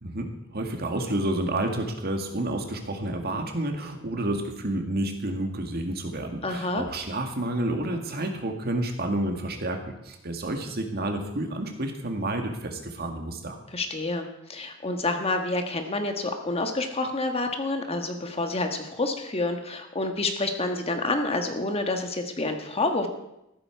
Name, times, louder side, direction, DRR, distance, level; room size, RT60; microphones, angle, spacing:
voice 1, 0.0-13.6, right 1 dB, 50° right, 4 dB, 1.9 m, -30 dB
voice 2, 6.4-6.8 13.7-23.1, left 2 dB, 30° left, 5 dB, 1.4 m, -28 dB
14.5 x 12.5 x 4.6 m, 0.87 s
head